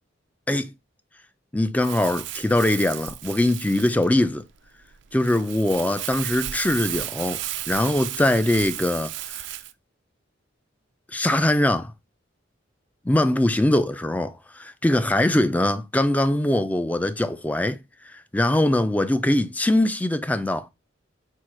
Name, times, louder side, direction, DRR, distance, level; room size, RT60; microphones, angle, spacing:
voice 1, 1.5-4.4 5.1-9.4 11.1-11.9 13.1-17.8 18.1-20.7, left 1 dB, 10° left, 0.3 m, -22 dB
Crumpling crinkling, 1.8-9.7, right 13 dB, 65° right, 0.4 m, -34 dB
4.5 x 2.3 x 4.6 m
head